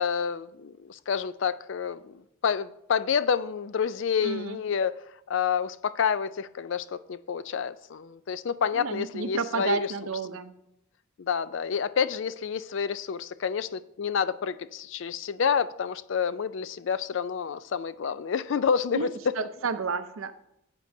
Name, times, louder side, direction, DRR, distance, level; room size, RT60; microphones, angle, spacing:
voice 1, 0.0-4.9 5.3-9.9 11.2-19.1 19.4-19.5, left 6 dB, 65° left, 16 dB, 0.4 m, -29 dB
voice 2, 4.2-4.6 8.7-10.5 18.9-19.1 19.4-20.4, right 5 dB, 80° right, 11 dB, 0.6 m, -31 dB
14.0 x 8.9 x 2.7 m, 0.83 s
head